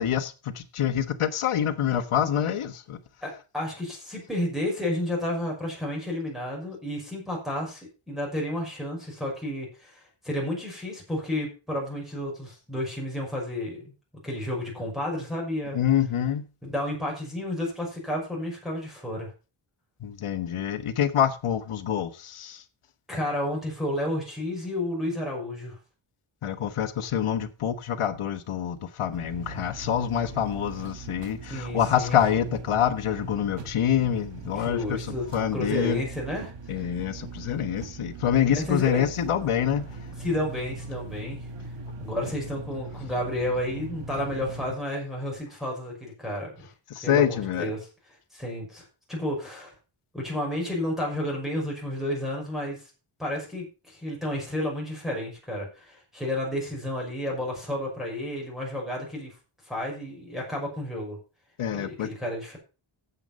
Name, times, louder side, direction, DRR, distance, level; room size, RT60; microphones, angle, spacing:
voice 1, 0.0-3.0 15.7-16.4 20.0-22.6 26.4-36.0 36.7-40.0 46.9-47.7 61.6-62.1, left 9 dB, 80° left, 1.3 m, -26 dB
voice 2, 3.2-13.9 14.2-15.8 16.6-19.3 23.1-25.8 31.5-32.2 34.5-35.3 35.5-36.9 38.5-39.1 40.2-41.5 42.0-46.7 47.0-47.9 48.3-49.7 50.1-52.9 53.2-59.4 59.6-61.2 61.7-62.6, left 1 dB, ahead, 5.8 m, -31 dB
sound 1, 29.1-44.8, right 3 dB, 55° right, 1.5 m, -40 dB
10.0 x 8.2 x 5.3 m
wide cardioid pair, 150°, 50 cm